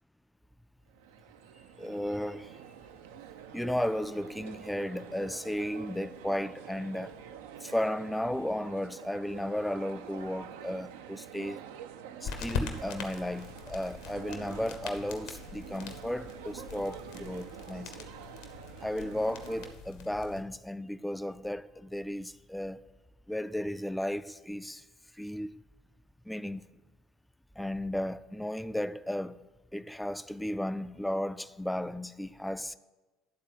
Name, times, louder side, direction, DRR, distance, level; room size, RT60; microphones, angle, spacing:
sound 1, 0.9-19.7, right 9 dB, 65° right, 0.4 m, -47 dB
voice 1, 1.8-2.6 3.5-7.2 7.6-11.6 12.2-18.1 18.8-22.8 23.3-24.8 25.1-25.6 26.3-26.6 27.6-29.4 29.7-32.8, left 1 dB, 5° left, 0.3 m, -34 dB
sound 2, 12.2-20.4, left 5 dB, 60° left, 0.8 m, -42 dB
10.5 x 4.0 x 7.5 m
figure-of-eight pair, 60°, 0 cm